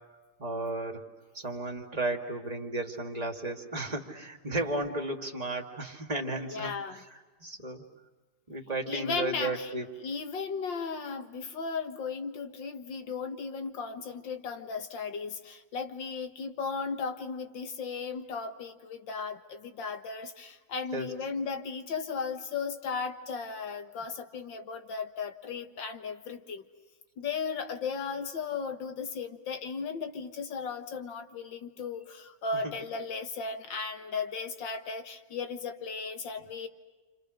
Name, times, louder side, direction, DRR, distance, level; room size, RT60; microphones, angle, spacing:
voice 1, 0.4-1.0 1.3-7.8 8.5-9.9 20.9-21.1 32.6-32.7, right 2 dB, 20° right, 2 dB, 2.4 m, -34 dB
voice 2, 6.5-7.0 8.9-9.7 10.0-26.6 27.2-36.7, left 5 dB, 85° left, 7 dB, 2.3 m, -36 dB
30.0 x 27.0 x 6.5 m, 1.3 s
omnidirectional pair, 2.0 m